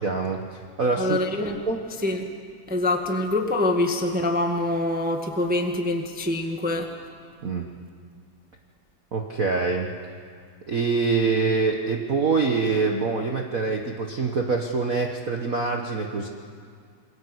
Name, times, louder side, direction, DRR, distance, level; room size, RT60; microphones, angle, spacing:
voice 1, 0.0-1.8 7.4-7.7 9.1-9.9 10.7-16.3, right 4 dB, 75° right, 2 dB, 0.7 m, -25 dB
voice 2, 1.0-1.6 2.0-2.3 2.7-6.9, left 2 dB, 5° right, 3 dB, 0.8 m, -25 dB
28.0 x 21.5 x 8.1 m, 2.1 s
omnidirectional pair, 3.7 m